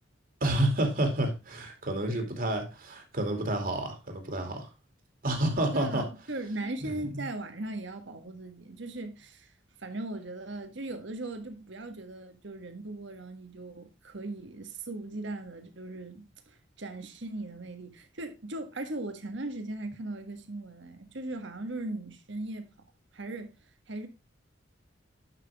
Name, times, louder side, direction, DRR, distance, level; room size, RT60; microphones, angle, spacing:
voice 1, 0.4-4.7 5.2-6.0 6.9-7.2, right 1 dB, 50° right, 2.6 m, -29 dB
voice 2, 5.7-9.5 9.8-22.7 23.1-23.5 23.9-24.1, right 2 dB, 65° right, 1.6 m, -38 dB
11.0 x 6.0 x 3.5 m
head